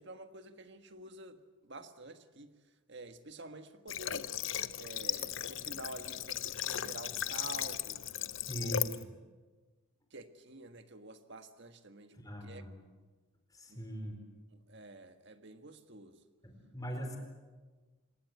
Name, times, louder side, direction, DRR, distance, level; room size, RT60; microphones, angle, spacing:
voice 1, 0.0-2.5 2.9-4.3 4.8-8.0 8.6-8.9 10.1-12.6 13.7-13.8 14.5-16.2, right 2 dB, 55° right, 8 dB, 1.6 m, -49 dB
Water / Water tap faucet, 3.9-9.0, left 10 dB, 60° left, 0.8 m, -37 dB
voice 2, 8.5-9.1 12.1-12.7 13.5-14.2 16.4-17.2, equal, 15° left, 4 dB, 4.2 m, -40 dB
26.0 x 20.5 x 8.2 m, 1.3 s
head